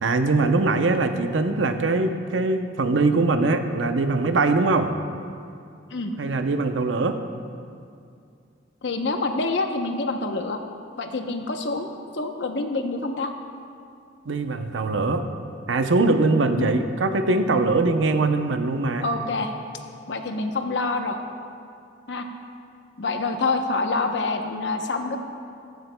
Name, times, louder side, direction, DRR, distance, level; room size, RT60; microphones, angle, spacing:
voice 1, 0.0-4.9 6.2-7.2 14.3-15.2 15.7-19.0, right 3 dB, 90° right, 7 dB, 0.7 m, -22 dB
voice 2, 8.8-10.6 11.0-13.3 16.6-16.7 19.0-19.5 20.1-21.2 22.1-22.3 23.0-25.2, left 3 dB, 65° left, 5 dB, 0.8 m, -26 dB
14.5 x 14.0 x 2.3 m, 2.4 s
head